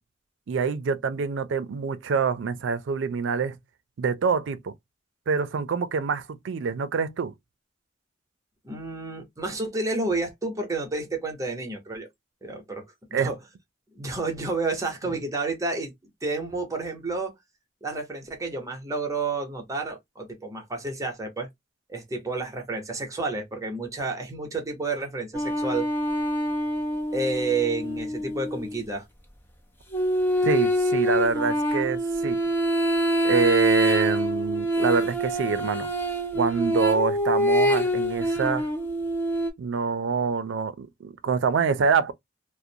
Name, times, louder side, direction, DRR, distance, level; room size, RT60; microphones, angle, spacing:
voice 1, 0.5-3.6 4.0-4.7 5.3-7.3 13.1-13.3 30.4-32.4 33.2-35.9 36.3-38.7 39.6-42.1, right 5 dB, 85° right, 0.4 m, -26 dB
voice 2, 8.6-12.1 12.4-13.4 13.9-15.9 16.2-17.3 17.8-21.5 21.9-25.9 27.1-29.1, right 3 dB, 20° right, 0.8 m, -30 dB
sound 1, 25.3-28.8 29.9-39.5, equal, 10° left, 0.5 m, -25 dB
2.5 x 2.0 x 2.6 m
head